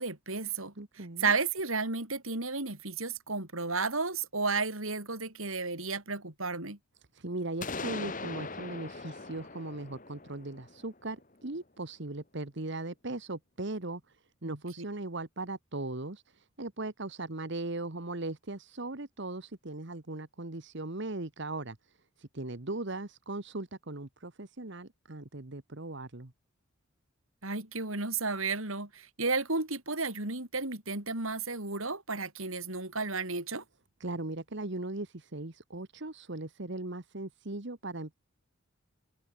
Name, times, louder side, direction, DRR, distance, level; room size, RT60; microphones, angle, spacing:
voice 1, 0.0-0.7 1.2-6.8 14.4-14.6 27.4-33.6, right 4 dB, 75° right, 5.4 m, -33 dB
voice 2, 0.8-1.3 7.1-21.8 22.2-26.3 34.0-38.1, right 2 dB, 55° right, 1.5 m, -38 dB
sound 1, 7.6-11.4, left 3 dB, 40° left, 2.2 m, -41 dB
head